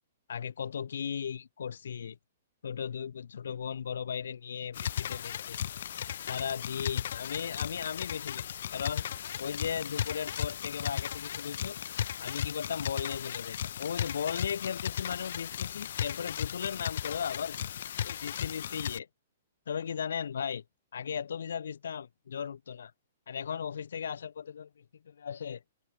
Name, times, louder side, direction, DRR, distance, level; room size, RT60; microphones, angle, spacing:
voice 1, 0.3-2.2 2.6-5.6 6.2-8.5 8.7-9.0 9.4-11.8 12.2-17.7 18.0-19.1 19.7-20.6 20.9-22.9 23.3-25.6, left 7 dB, 80° left, 2.2 m, -36 dB
sound 1, 4.7-19.0, left 10 dB, 50° left, 0.7 m, -36 dB
hypercardioid pair, 180°, 0 cm